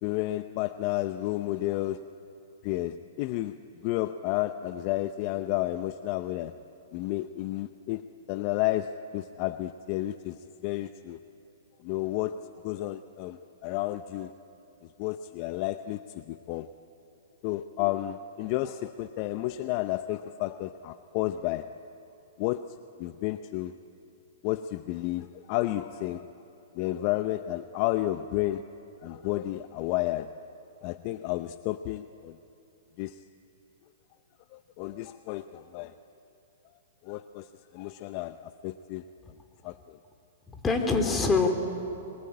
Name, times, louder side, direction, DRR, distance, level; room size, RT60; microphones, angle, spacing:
voice 1, 0.0-2.1 2.6-6.6 6.9-11.2 11.8-14.3 15.0-16.7 17.4-21.7 22.4-23.7 24.4-26.3 26.7-28.7 29.0-30.3 30.8-32.4 33.0-33.2 34.5-35.9 37.0-39.0 39.6-40.0, left 15 dB, 45° left, 11 dB, 0.7 m, -31 dB
voice 2, 40.5-41.5, left 4 dB, 15° left, 5 dB, 3.3 m, -25 dB
29.0 x 23.5 x 8.8 m, 2.9 s
hypercardioid pair, 125°, 0 cm